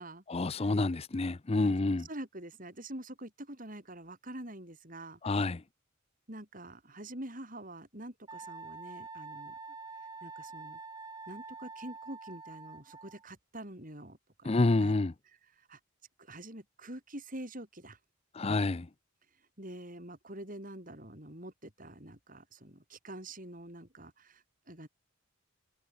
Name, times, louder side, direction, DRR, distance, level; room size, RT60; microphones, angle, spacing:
voice 1, 0.3-2.0 5.2-5.6 14.4-15.1 18.3-18.9, left 2 dB, 30° left, 0.5 m, -28 dB
voice 2, 2.0-5.2 6.3-9.6 10.2-10.8 11.3-14.9 15.6-15.8 16.2-18.0 19.6-24.9, right 1 dB, 40° right, 7.2 m, -46 dB
Wind instrument woodwind instrument, 8.3-13.3, right 3 dB, 20° right, 7.5 m, -46 dB
head